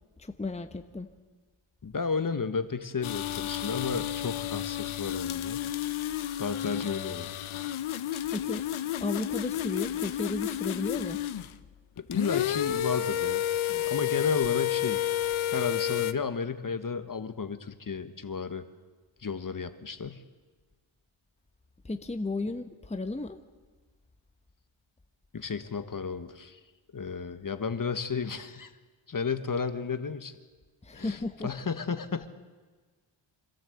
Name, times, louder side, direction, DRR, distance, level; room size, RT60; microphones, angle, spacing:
voice 1, 0.2-1.1 8.3-8.6 9.0-11.2 21.8-23.4 30.8-31.5, left 2 dB, 15° left, 7 dB, 1.1 m, -34 dB
voice 2, 1.8-5.6 6.3-7.3 8.1-8.4 12.0-13.4 13.7-15.0 15.5-18.6 19.2-20.2 25.3-26.6 26.9-28.7 29.1-30.3 30.9-32.3, left 5 dB, 40° left, 10 dB, 1.4 m, -33 dB
sound 1, 3.0-11.6 12.0-16.1, left 11 dB, 75° left, 0.8 m, -31 dB
25.5 x 13.5 x 7.9 m, 1.4 s
cardioid pair, 65°, 50 cm